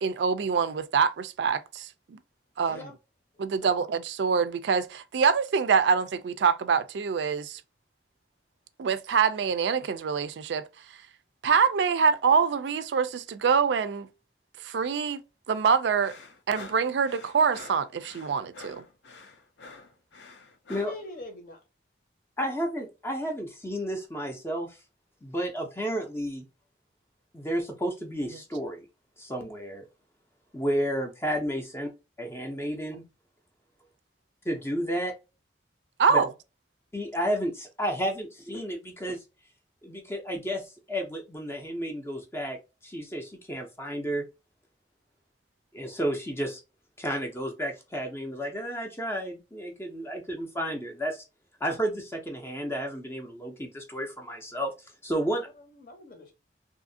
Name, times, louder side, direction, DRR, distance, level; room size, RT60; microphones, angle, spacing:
voice 1, 0.0-2.2 2.6-2.8 3.4-7.6 8.8-10.6 11.4-14.1 14.6-15.2 15.5-16.2 16.5-18.8 36.0-36.3, right 6 dB, 75° right, 0.3 m, -25 dB
voice 2, 2.6-2.9 3.3-3.8 20.7-21.6 55.2-56.3, left 2 dB, 50° left, 0.7 m, -44 dB
sound 1, 16.0-21.0, left 3 dB, 80° left, 0.6 m, -47 dB
voice 3, 22.4-24.8 25.2-26.4 27.3-28.9 29.2-29.8 30.5-31.9 32.2-33.0 34.5-35.1 36.1-36.2 36.9-39.2 39.8-42.6 42.8-44.2 45.7-46.6 47.0-51.2 51.6-54.7 55.0-55.5, equal, 15° left, 0.5 m, -32 dB
2.7 x 2.5 x 2.6 m
head